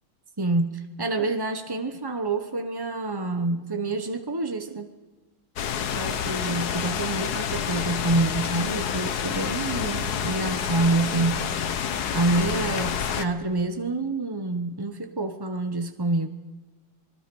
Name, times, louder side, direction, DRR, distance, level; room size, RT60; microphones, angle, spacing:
voice 1, 0.4-4.9 5.8-11.5 12.1-16.3, right 2 dB, 25° right, 7 dB, 0.5 m, -27 dB
sound 1, 5.6-13.2, left 8 dB, 60° left, 1.4 m, -28 dB
26.0 x 21.0 x 5.4 m, 1.2 s
omnidirectional pair, 2.2 m